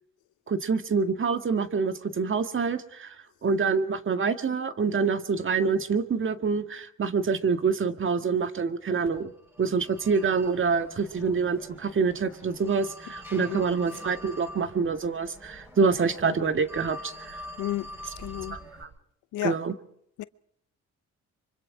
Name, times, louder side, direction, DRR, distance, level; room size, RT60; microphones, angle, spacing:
voice 1, 0.5-3.1 3.4-9.3 9.6-17.4 18.5-18.9 19.4-19.7, right 5 dB, 40° right, 1.8 m, -26 dB
Telephone, 9.0-18.8, left 1 dB, 10° right, 7.8 m, -45 dB
voice 2, 17.6-17.9 18.2-18.6 19.3-19.5 20.2-20.3, left 15 dB, 90° left, 0.8 m, -31 dB
25.0 x 24.5 x 4.9 m
cardioid pair, 90°, 30 cm